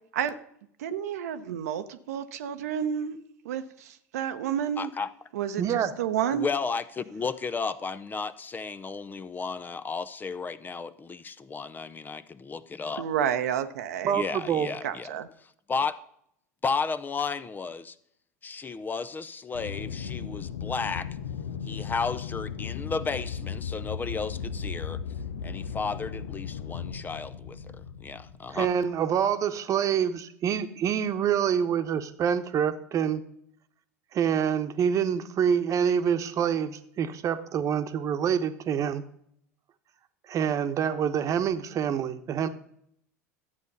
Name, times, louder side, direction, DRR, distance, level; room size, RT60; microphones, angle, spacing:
voice 1, 0.8-3.2 3.4-4.9 5.3-6.5 13.0-14.2 14.8-15.3, right 9 dB, 70° right, 0.8 m, -30 dB
voice 2, 4.8-5.1 6.3-13.0 14.1-15.2 15.7-16.0 16.6-17.9 18.4-21.1 21.7-25.0 25.4-28.7, left 5 dB, 20° left, 0.6 m, -33 dB
voice 3, 5.6-5.9 14.0-14.7 28.5-33.2 34.1-39.0 40.3-42.5, right 8 dB, 40° right, 1.1 m, -26 dB
Aircraft, 19.5-29.0, left 7 dB, 75° left, 0.8 m, -36 dB
13.0 x 8.4 x 5.4 m
hypercardioid pair, 80°, 9 cm